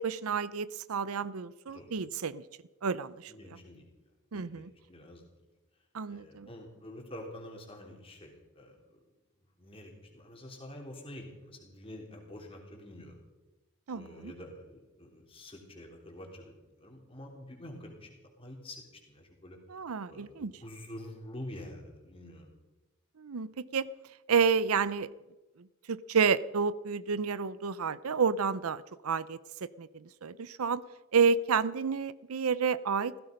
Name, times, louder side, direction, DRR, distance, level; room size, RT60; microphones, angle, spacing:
voice 1, 0.0-2.4 2.8-3.3 4.3-4.7 5.9-6.5 13.9-14.3 19.7-20.5 23.2-23.9 24.3-25.1 25.9-29.4 29.8-30.8 31.1-33.1, right 5 dB, 80° right, 17 dB, 0.6 m, -30 dB
voice 2, 3.3-3.8 4.3-5.3 6.1-9.0 9.6-13.2 13.9-19.6 20.1-22.5, left 1 dB, 25° left, 1 dB, 3.5 m, -47 dB
16.5 x 15.5 x 5.3 m, 1.1 s
head